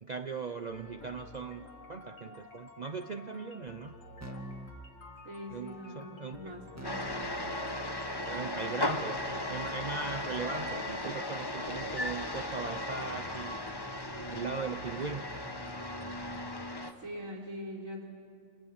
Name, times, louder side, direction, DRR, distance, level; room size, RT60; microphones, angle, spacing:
voice 1, 0.0-3.9 5.5-6.5 8.3-9.2 9.5-13.6 14.3-15.3, right 4 dB, 40° right, 7 dB, 0.7 m, -39 dB
sound 1, 0.7-16.7, left 3 dB, 70° left, 2.1 m, -51 dB
Keyboard (musical), 4.2-4.8 6.8-15.6, right 1 dB, 10° right, 2.2 m, -49 dB
voice 2, 5.2-7.5 17.0-18.1, equal, 80° right, -1 dB, 4.7 m, -43 dB
sound 2, 6.8-16.9, left 1 dB, 20° left, 1.3 m, -36 dB
29.5 x 27.5 x 7.3 m, 2.2 s
omnidirectional pair, 1.4 m